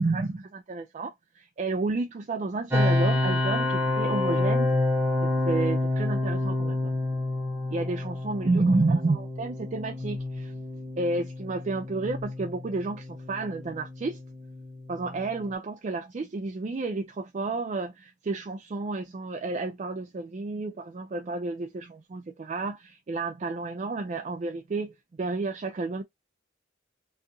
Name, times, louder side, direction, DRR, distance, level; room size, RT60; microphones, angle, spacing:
voice 1, 0.0-4.7 5.2-7.0 7.7-10.5 11.0-14.2 14.9-26.0, right 3 dB, 40° right, 0.3 m, -30 dB
sound 1, 2.7-15.5, left 2 dB, 15° right, 0.8 m, -28 dB
2.6 x 2.4 x 2.5 m
head